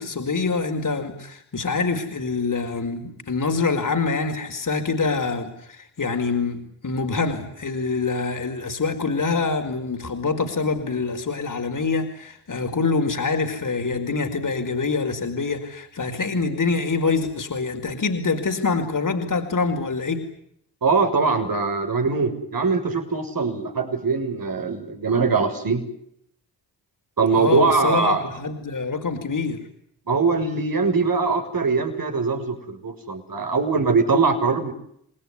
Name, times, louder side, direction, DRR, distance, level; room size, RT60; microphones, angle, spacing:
voice 1, 0.0-20.2 27.3-29.6, left 4 dB, 45° left, 4 dB, 5.1 m, -25 dB
voice 2, 20.8-25.8 27.2-28.2 30.1-34.7, right 4 dB, 50° right, 5 dB, 6.9 m, -22 dB
28.5 x 20.0 x 9.9 m, 0.71 s
supercardioid pair, 45°, 45 cm